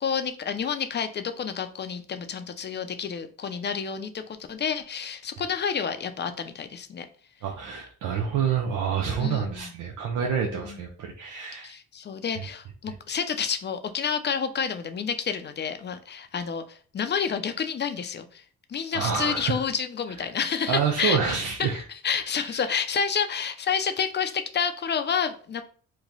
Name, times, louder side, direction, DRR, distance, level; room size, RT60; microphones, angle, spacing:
voice 1, 0.0-7.1 9.2-9.7 10.6-10.8 11.6-18.4 18.7-25.6, left 7 dB, 35° left, 9 dB, 0.5 m, -29 dB
voice 2, 7.4-11.7 12.9-13.0 18.9-19.6 20.7-21.8 22.3-22.7, right 7 dB, 80° right, 1 dB, 0.6 m, -28 dB
3.0 x 2.2 x 3.8 m, 0.43 s
cardioid pair, 90°, 30 cm